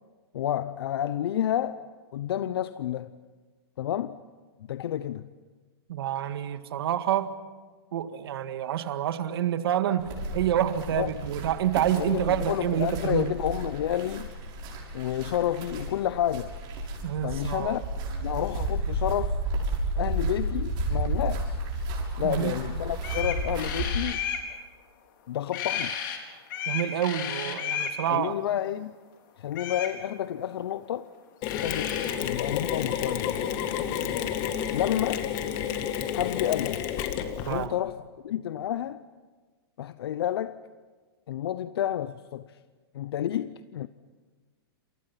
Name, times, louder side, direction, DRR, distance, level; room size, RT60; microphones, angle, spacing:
voice 1, 0.3-1.8 2.1-3.1 3.8-4.2 4.7-5.3 10.9-11.1 11.9-14.3 14.9-16.5 17.2-17.8 18.1-19.4 20.0-21.6 22.2-24.3 25.3-26.0 28.1-28.9 29.4-31.1 31.5-32.0 32.2-33.4 34.7-35.3 36.1-36.8 37.5-39.0 39.8-40.6 41.3-42.6 42.9-43.9, left 11 dB, 70° left, 0.8 m, -30 dB
voice 2, 5.9-7.3 7.9-13.3 17.0-17.7 22.2-22.6 26.7-28.3 37.5-37.7, right 10 dB, 65° right, 1.8 m, -28 dB
sound 1, 10.0-23.9, right 1 dB, 35° right, 6.7 m, -32 dB
sound 2, 22.6-22.7 23.0-24.4 25.5-26.2 26.5-28.0 29.5-29.9 31.1-31.2 31.4-32.1, left 8 dB, 55° left, 4.7 m, -33 dB
Mechanisms, 31.4-37.7, left 9 dB, 35° left, 2.0 m, -30 dB
29.5 x 28.0 x 5.9 m
hypercardioid pair, 155°, 13 cm